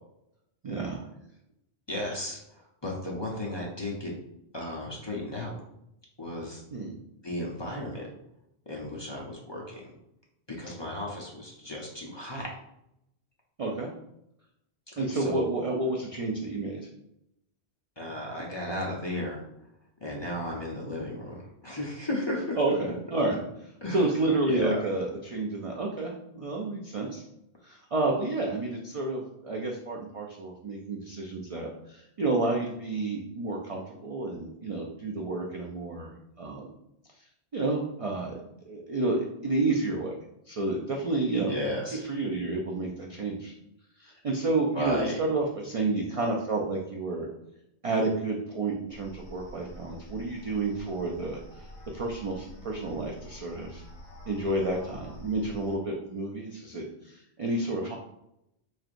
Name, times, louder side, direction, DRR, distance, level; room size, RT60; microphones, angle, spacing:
voice 1, 0.6-1.0 6.7-7.0 13.6-13.9 15.0-16.8 22.6-23.4 23.9-27.2 27.6-36.7 37.5-38.4 38.7-40.1 40.5-41.5 42.1-43.5 44.0-47.3 47.8-51.6 51.9-53.8 54.3-57.9, right 2 dB, 55° right, -1 dB, 0.4 m, -30 dB
voice 2, 1.9-4.1 4.5-5.6 6.2-6.6 7.2-8.1 8.7-9.9 10.6-12.5 15.0-15.4 18.0-19.4 20.0-22.6 23.8-24.0 24.5-24.8 41.5-42.0 44.7-45.2, left 1 dB, 30° left, -3 dB, 0.6 m, -34 dB
sound 1, 48.9-55.8, left 1 dB, 85° left, 1.3 m, -47 dB
3.9 x 3.2 x 2.5 m, 0.81 s
omnidirectional pair, 1.1 m